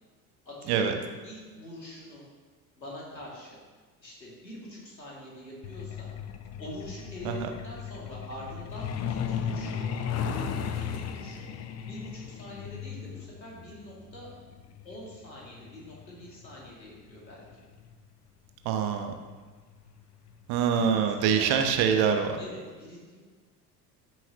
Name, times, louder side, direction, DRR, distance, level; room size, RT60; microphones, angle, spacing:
voice 1, 0.4-1.0 1.2-2.2 2.8-3.6 4.0-6.1 6.6-11.5 11.8-14.3 14.8-17.4 20.7-21.5 22.4-23.2, left 1 dB, 90° left, -4 dB, 2.5 m, -44 dB
Truck, 5.6-17.9 19.2-19.3 19.7-19.9 20.3-20.6 20.9-21.0 21.4-21.5, left 7 dB, 30° left, 0.7 m, -36 dB
voice 2, 18.6-19.1 20.5-22.4, right 7 dB, 50° right, 5 dB, 1.1 m, -25 dB
13.0 x 6.2 x 3.0 m, 1.5 s
figure-of-eight pair, 70°, 50 cm